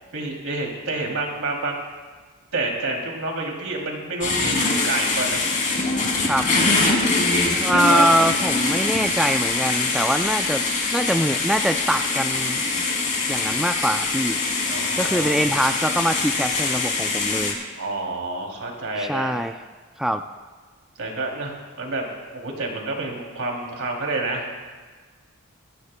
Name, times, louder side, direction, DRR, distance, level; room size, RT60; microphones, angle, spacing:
voice 1, 0.1-1.8 2.5-5.4 7.7-8.0 14.6-15.4 17.8-19.4 21.0-22.1 22.3-24.5, right 2 dB, 70° right, 0 dB, 2.8 m, -28 dB
sound 1, 4.2-17.5, left 3 dB, 35° left, 2.7 m, -23 dB
voice 2, 7.6-10.6 10.9-12.9 13.3-14.4 15.0-17.6 19.0-19.6 20.0-20.2, equal, ahead, 6 dB, 0.3 m, -23 dB
21.5 x 15.0 x 2.2 m, 1.4 s
head